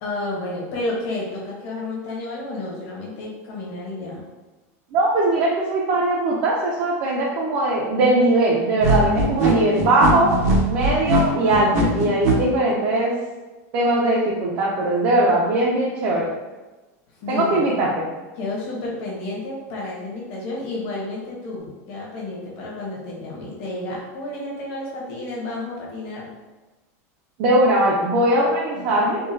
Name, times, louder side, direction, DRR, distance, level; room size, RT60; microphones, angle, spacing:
voice 1, 0.0-4.2 17.2-17.7 18.3-26.3 28.7-29.0, left 2 dB, 50° left, -3 dB, 1.0 m, -31 dB
voice 2, 4.9-10.4 10.7-13.1 13.7-16.3 17.3-18.1 27.4-29.3, right 1 dB, 45° right, -4 dB, 0.5 m, -20 dB
sound 1, 8.8-12.4, right 2 dB, 75° right, 0.8 m, -20 dB
3.7 x 2.2 x 2.6 m, 1.2 s
supercardioid pair, 155°, 9 cm